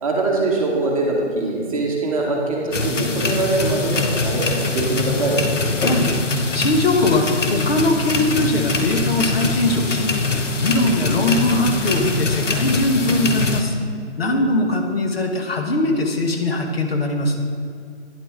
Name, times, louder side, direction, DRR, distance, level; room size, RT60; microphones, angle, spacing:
voice 1, 0.0-5.4 14.2-14.4, right 2 dB, 30° right, -2 dB, 1.3 m, -23 dB
sound 1, 2.7-13.6, left 3 dB, 80° left, 0.9 m, -23 dB
voice 2, 5.8-6.2 6.5-10.1 10.6-13.8 14.2-17.4, left 2 dB, 55° left, 3 dB, 1.1 m, -21 dB
10.0 x 6.9 x 3.6 m, 2.2 s
figure-of-eight pair, 150°, 36 cm